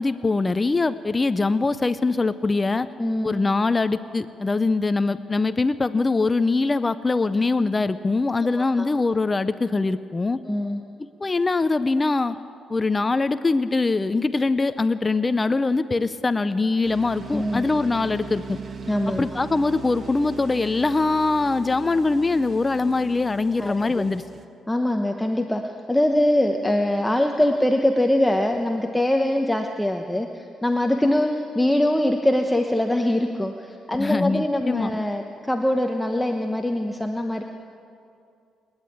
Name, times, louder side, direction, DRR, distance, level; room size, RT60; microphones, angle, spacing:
voice 1, 0.0-2.9 3.2-10.4 11.0-12.4 12.7-18.6 19.1-24.2 34.0-35.0, left 3 dB, 25° left, 13 dB, 0.6 m, -23 dB
voice 2, 3.0-3.3 8.6-8.9 10.5-10.8 17.3-17.6 18.9-19.3 23.6-24.0 24.7-37.4, left 1 dB, 5° left, 3 dB, 1.0 m, -23 dB
sound 1, 16.8-24.5, right 5 dB, 45° right, 1.6 m, -39 dB
29.0 x 10.5 x 9.3 m, 2.5 s
cardioid pair, 90°, 0 cm